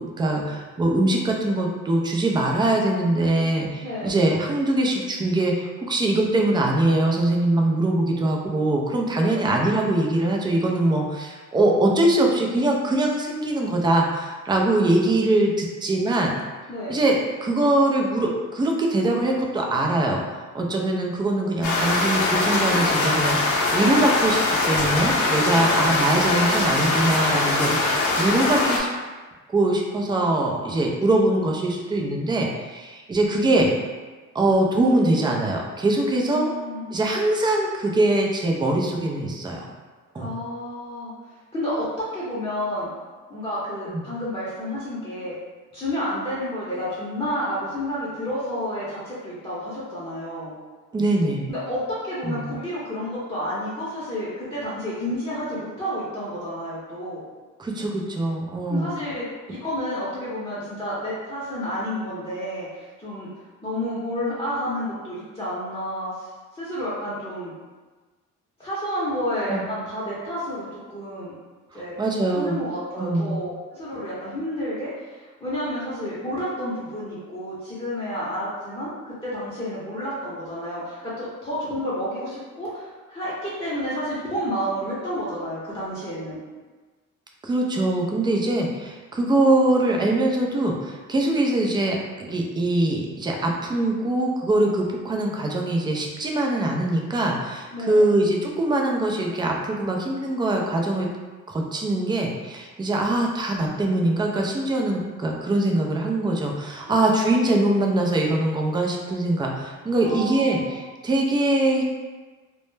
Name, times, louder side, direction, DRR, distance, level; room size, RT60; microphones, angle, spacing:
voice 1, 0.0-16.3 16.9-24.4 24.7-28.9 29.5-33.7 34.3-36.5 36.9-39.7 40.1-40.3 43.9-44.0 50.9-51.4 52.2-52.5 57.6-58.9 69.5-69.7 71.7-72.6 72.9-73.4 87.4-101.1 101.5-111.8, right 1 dB, 15° right, 0 dB, 0.3 m, -22 dB
voice 2, 3.8-4.1 9.2-9.5 16.7-17.0 25.5-25.8 36.2-36.9 40.2-41.1 41.5-42.9 43.3-45.4 45.7-50.5 51.5-57.2 58.7-63.3 63.6-66.3 66.5-67.5 68.6-71.3 71.7-72.0 72.3-86.4 97.7-98.1 106.8-107.1 110.0-110.8, equal, 20° left, -9 dB, 0.7 m, -30 dB
sound 1, 21.6-28.8, left 2 dB, 70° left, 0.6 m, -22 dB
2.1 x 2.0 x 3.1 m, 1.3 s
cardioid pair, 90°, 30 cm